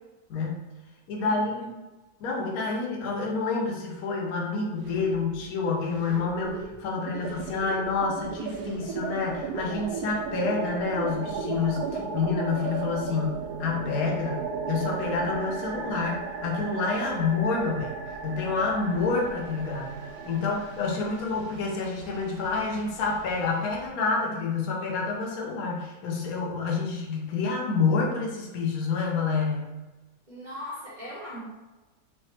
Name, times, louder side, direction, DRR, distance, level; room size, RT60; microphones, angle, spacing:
voice 1, 0.3-0.6 1.1-1.7 2.2-17.9 18.2-19.9 20.3-29.7, left 4 dB, 65° left, -1 dB, 1.2 m, -28 dB
voice 2, 1.2-1.7 30.3-31.4, equal, 30° right, -8 dB, 1.1 m, -40 dB
sound 1, 4.8-5.6 5.9-23.9, right 5 dB, 80° right, 1.2 m, -36 dB
3.3 x 2.7 x 4.2 m, 1.1 s
omnidirectional pair, 1.7 m